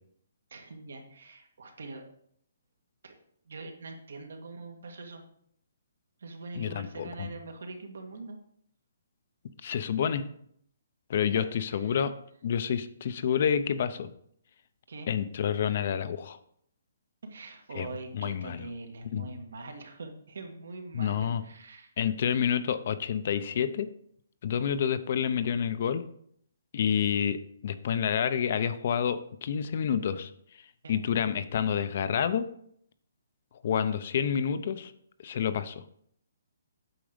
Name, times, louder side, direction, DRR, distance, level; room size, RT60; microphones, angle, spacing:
voice 1, 0.5-2.1 3.0-3.2 3.5-5.2 6.2-8.4 11.3-11.4 11.7-12.0 14.9-15.1 17.2-21.9 30.8-31.0, right 3 dB, 75° right, 4 dB, 1.9 m, -43 dB
voice 2, 6.6-7.3 9.6-10.2 11.1-12.1 12.4-14.1 15.1-16.4 17.7-17.9 18.1-18.7 19.1-19.3 20.9-21.4 22.0-23.9 24.4-26.0 26.7-30.3 30.9-32.5 33.6-34.9 35.2-35.8, left 8 dB, 40° left, 12 dB, 0.6 m, -28 dB
8.9 x 6.1 x 5.1 m, 0.67 s
hypercardioid pair, 170°, 0 cm